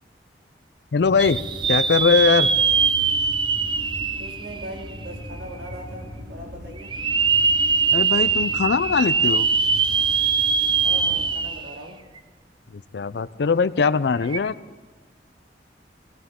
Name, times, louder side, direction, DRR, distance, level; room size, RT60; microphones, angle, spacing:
voice 1, 0.9-1.4 1.7-2.5 7.9-9.5 12.7-14.5, left 5 dB, 70° left, 16 dB, 0.5 m, -21 dB
sound 1, 1.0-11.5, equal, 55° right, 1.8 m, -39 dB
sound 2, 1.2-5.2 5.7-5.8 6.8-11.8 12.2-12.3 14.2-14.4, right 5 dB, 25° right, 0.6 m, -22 dB
voice 2, 4.2-6.9 10.8-12.0, right 1 dB, 80° right, -1 dB, 3.2 m, -39 dB
18.5 x 17.5 x 3.7 m, 1.3 s
head